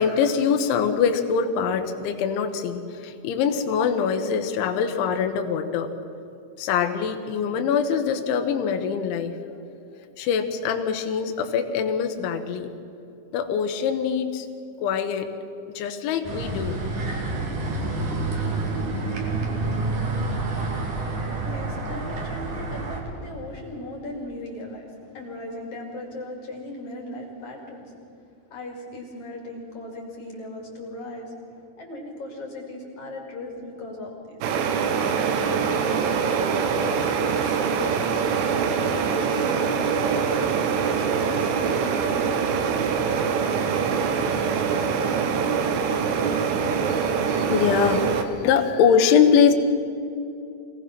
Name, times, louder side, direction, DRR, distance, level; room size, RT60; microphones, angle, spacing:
voice 1, 0.0-5.9 6.6-9.4 10.2-12.7 13.3-14.5 14.8-15.3 15.7-16.8 46.9-49.5, left 7 dB, 75° left, 6 dB, 3.4 m, -23 dB
sound 1, 16.2-23.0, right 3 dB, 50° right, 3.4 m, -28 dB
voice 2, 21.4-27.9 28.5-34.4 35.2-38.1 38.9-40.5 40.8-42.8, left 1 dB, 45° left, 0 dB, 3.3 m, -38 dB
sound 2, 34.4-48.2, right 6 dB, 85° right, 3.7 m, -24 dB
25.5 x 18.0 x 6.0 m, 2.7 s
omnidirectional pair, 5.6 m